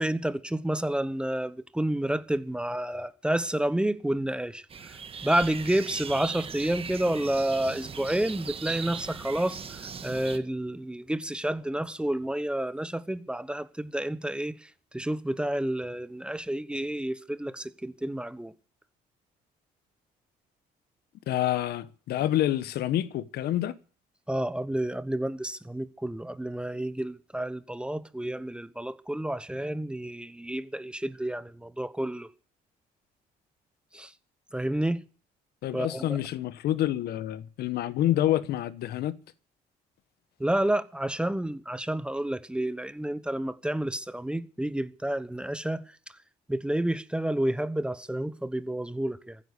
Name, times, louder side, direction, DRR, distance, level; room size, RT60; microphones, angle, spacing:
voice 1, 0.0-14.7 14.9-18.5 24.3-32.3 33.9-34.1 34.5-35.0 35.7-36.2 40.4-45.8 46.5-49.4, right 1 dB, 5° right, 1.0 m, -30 dB
sound 1, 4.7-10.4, right 6 dB, 35° right, 1.6 m, -39 dB
voice 2, 21.3-23.8 35.6-39.2, left 13 dB, 70° left, 1.2 m, -27 dB
15.0 x 9.6 x 8.3 m
cardioid pair, 110°, 17 cm